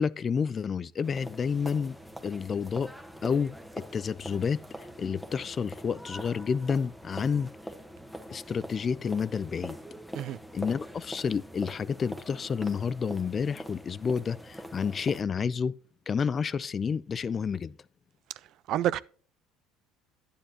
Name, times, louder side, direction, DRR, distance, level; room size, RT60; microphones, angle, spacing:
voice 1, 0.0-2.0 2.2-2.9 3.2-7.5 8.3-9.8 10.5-15.7 16.1-17.8, left 6 dB, 35° left, 0.5 m, -30 dB
sound 1, 1.0-15.2, equal, ahead, 1.3 m, -43 dB
voice 2, 18.7-19.0, right 12 dB, 60° right, 0.4 m, -28 dB
10.0 x 9.9 x 2.9 m
supercardioid pair, 80°, 0 cm